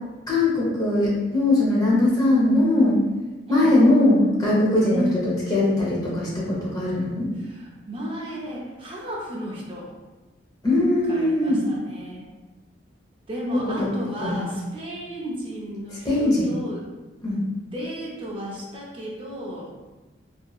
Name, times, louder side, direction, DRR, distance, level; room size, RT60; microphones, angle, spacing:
voice 1, 0.3-3.0 3.5-5.0 5.5-7.3 10.6-11.6 13.8-13.9 14.2-14.5 16.0-16.5 17.2-17.4, left 2 dB, 20° left, -7 dB, 0.8 m, -20 dB
voice 2, 7.4-9.9 11.1-12.2 13.3-16.9 17.7-19.9, equal, 30° right, -4 dB, 0.4 m, -33 dB
2.7 x 2.6 x 2.3 m, 1.2 s
head